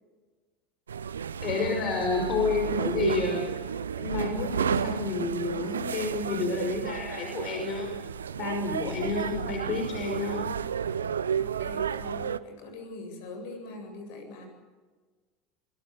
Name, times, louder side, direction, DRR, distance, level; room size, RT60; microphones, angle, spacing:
sound 1, 0.9-12.4, right 7 dB, 80° right, 0.8 m, -32 dB
voice 1, 1.4-3.4 3.9-7.9 8.4-10.5, left 4 dB, 45° left, 4 dB, 5.4 m, -30 dB
voice 2, 11.3-14.5, left 3 dB, 60° left, 5 dB, 7.8 m, -43 dB
25.5 x 22.5 x 6.8 m, 1.4 s
figure-of-eight pair, 75°, 0 cm